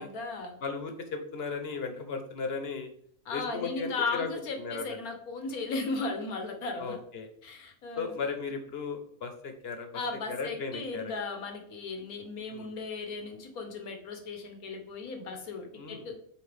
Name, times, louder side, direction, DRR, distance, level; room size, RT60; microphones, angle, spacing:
voice 1, 0.0-0.5 3.3-7.0 7.4-8.4 9.9-16.1, left 3 dB, 80° left, 4 dB, 1.6 m, -36 dB
voice 2, 0.6-2.9 3.3-4.3 4.6-5.0 6.8-7.3 8.0-9.9 10.3-11.1 12.5-12.7 15.8-16.0, left 5 dB, 50° left, 6 dB, 1.1 m, -36 dB
8.3 x 4.3 x 3.4 m, 0.67 s
omnidirectional pair, 1.5 m